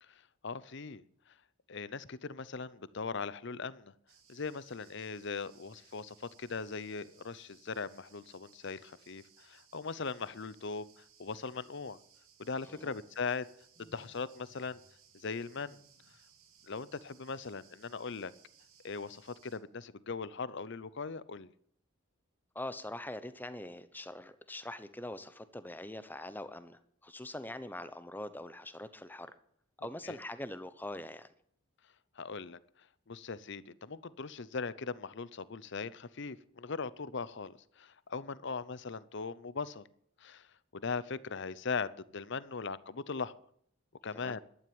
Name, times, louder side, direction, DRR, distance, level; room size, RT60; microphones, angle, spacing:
voice 1, 0.0-1.0 1.7-3.9 4.3-12.0 12.4-13.5 13.8-14.8 15.1-15.8 16.7-18.3 18.8-21.5 30.0-30.1 32.2-32.6 33.1-39.9 40.2-43.3 44.0-44.4, left 4 dB, 55° left, 18 dB, 0.7 m, -40 dB
sound 1, 4.1-19.6, right 8 dB, 85° right, 3.7 m, -64 dB
sound 2, 13.7-14.9 15.2-16.2, left 1 dB, 40° left, 2.2 m, -66 dB
voice 2, 22.5-29.3 29.8-31.3 44.1-44.3, left 1 dB, 10° left, 12 dB, 0.9 m, -43 dB
12.5 x 11.0 x 8.8 m, 0.67 s
head